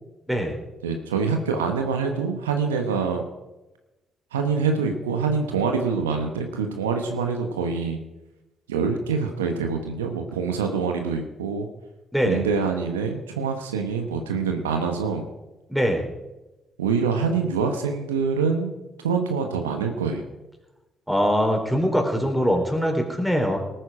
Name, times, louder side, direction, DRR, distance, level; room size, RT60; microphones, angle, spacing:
voice 1, 0.8-3.2 4.3-8.0 8.7-11.7 12.2-15.3 16.8-18.7 19.0-20.2, right 5 dB, 85° right, 4 dB, 1.0 m, -25 dB
voice 2, 12.1-12.4 15.7-16.0 21.1-23.6, equal, ahead, 3 dB, 3.8 m, -22 dB
18.5 x 9.1 x 5.0 m, 1.0 s
hypercardioid pair, 45°, 0 cm